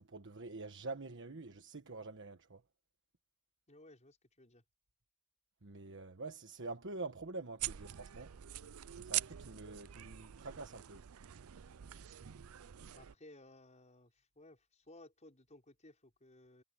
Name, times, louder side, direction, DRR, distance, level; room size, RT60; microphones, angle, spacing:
voice 1, 0.0-2.6 5.6-8.3 9.0-11.0, right 3 dB, 60° right, 1.4 m, -46 dB
voice 2, 3.7-4.6 12.9-16.6, left 1 dB, 35° left, 5.7 m, -59 dB
sound 1, 7.6-13.1, right 14 dB, 85° right, 0.5 m, -44 dB
head